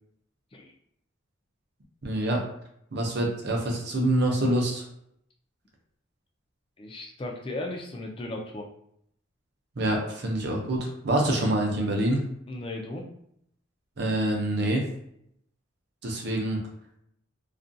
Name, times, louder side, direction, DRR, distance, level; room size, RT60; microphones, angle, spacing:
voice 1, 2.0-2.4 2.9-4.9 9.8-12.2 14.0-14.9 16.0-16.6, right 1 dB, 50° right, 0 dB, 0.5 m, -26 dB
voice 2, 6.8-8.7 11.3-11.4 12.5-13.0, left 2 dB, 25° left, 1 dB, 0.3 m, -36 dB
2.4 x 2.2 x 2.6 m, 0.72 s
head